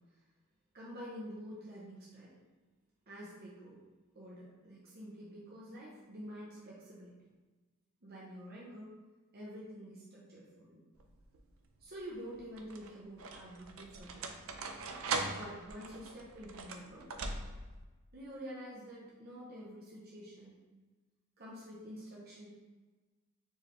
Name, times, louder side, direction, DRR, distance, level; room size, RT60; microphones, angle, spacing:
voice 1, 0.7-2.4 3.1-3.8 4.1-7.2 8.0-9.0 9.3-10.8 11.8-14.4 15.2-17.1 18.1-20.6 21.4-22.5, equal, 50° right, -6 dB, 0.8 m, -48 dB
sound 1, 11.0-11.5 12.3-17.8, right 3 dB, 75° right, 0.5 m, -41 dB
4.5 x 3.3 x 3.2 m, 1.3 s
head